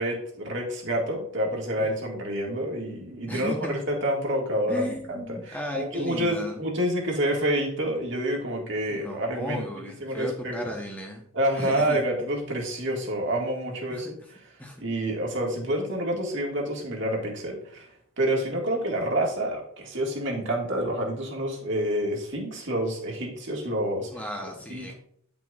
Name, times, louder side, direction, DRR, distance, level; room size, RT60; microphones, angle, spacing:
voice 1, 0.0-10.7 11.3-14.5 14.8-24.2 24.7-24.9, right 1 dB, 55° right, -1 dB, 1.9 m, -28 dB
voice 2, 3.3-3.8 4.7-6.7 8.9-11.2 11.5-12.0 13.9-14.3 14.6-14.8 24.1-24.9, equal, 5° left, 1 dB, 0.8 m, -35 dB
9.8 x 6.0 x 2.4 m, 0.68 s
head